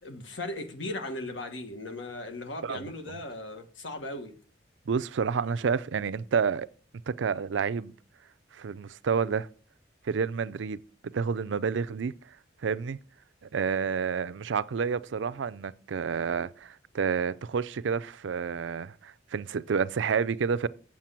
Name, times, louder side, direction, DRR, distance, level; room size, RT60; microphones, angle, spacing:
voice 1, 0.0-4.4, left 2 dB, 75° left, 1.6 m, -37 dB
voice 2, 2.6-3.2 4.9-6.7 7.1-7.9 8.5-9.5 10.0-10.8 11.1-12.1 12.6-13.0 13.5-20.7, right 6 dB, 70° right, 0.4 m, -29 dB
7.5 x 7.3 x 5.8 m
head